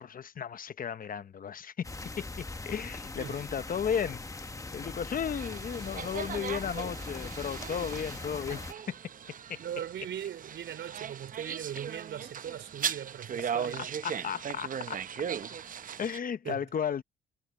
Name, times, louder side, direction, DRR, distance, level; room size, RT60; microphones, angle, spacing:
voice 1, 0.0-9.0 9.5-9.6 13.6-13.7 14.0-15.0 15.5-15.6 16.0-17.0, left 7 dB, 45° left, 0.9 m, -35 dB
sound 1, 1.8-8.7, left 3 dB, 15° left, 1.2 m, -41 dB
sound 2, 5.4-16.2, right 8 dB, 45° right, 0.7 m, -38 dB
voice 2, 9.6-14.3 16.4-16.7, right 10 dB, 70° right, 4.0 m, -40 dB
cardioid pair, 90°, 20 cm